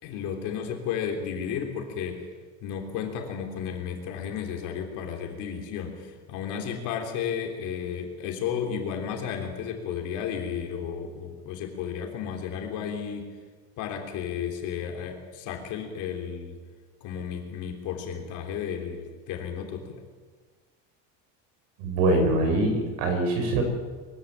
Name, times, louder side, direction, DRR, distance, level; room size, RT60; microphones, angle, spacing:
voice 1, 0.0-2.2 2.6-13.3 13.8-16.6 17.0-20.0, left 7 dB, 50° left, 2 dB, 3.5 m, -33 dB
voice 2, 21.8-23.6, right 2 dB, 75° right, 5 dB, 6.2 m, -23 dB
23.0 x 16.0 x 8.9 m, 1.5 s
cardioid pair, 175°, 39 cm